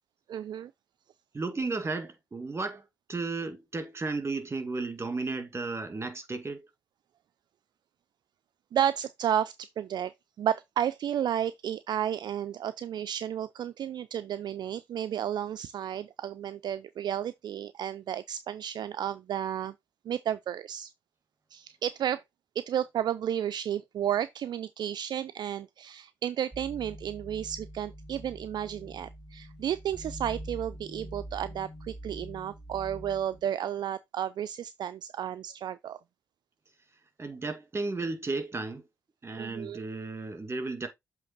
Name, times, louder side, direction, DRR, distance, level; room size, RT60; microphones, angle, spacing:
voice 1, 0.3-0.7 8.7-19.7 20.1-20.9 21.5-22.2 22.6-36.0 39.4-39.8, right 10 dB, 55° right, 0.4 m, -32 dB
voice 2, 1.3-6.7 37.2-38.9 39.2-40.9, right 3 dB, 30° right, 2.0 m, -34 dB
sound 1, 26.5-33.4, equal, ahead, 1.4 m, -44 dB
7.7 x 3.2 x 4.0 m
hypercardioid pair, 50°, 9 cm